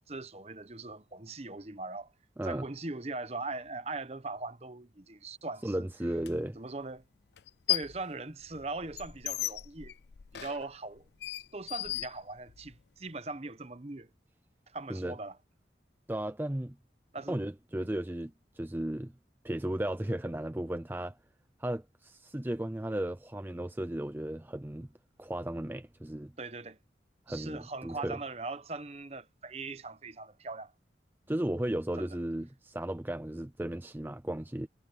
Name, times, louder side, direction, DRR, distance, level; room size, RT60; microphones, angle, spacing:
voice 1, 0.0-2.1 2.4-5.9 6.5-7.0 7.7-10.0 10.3-11.0 11.5-14.1 14.7-15.4 17.1-17.4 17.8-17.9 26.4-26.8 27.3-30.7 32.0-32.1, right 3 dB, 35° right, 1.0 m, -40 dB
voice 2, 5.6-6.6 14.9-15.2 16.1-16.8 17.3-19.1 19.4-21.2 21.6-24.9 25.2-26.3 27.3-28.2 31.3-34.7, right 1 dB, 10° right, 0.4 m, -35 dB
sound 1, 6.2-6.3 7.4-8.0 8.4-12.8, left 15 dB, 70° left, 0.5 m, -36 dB
head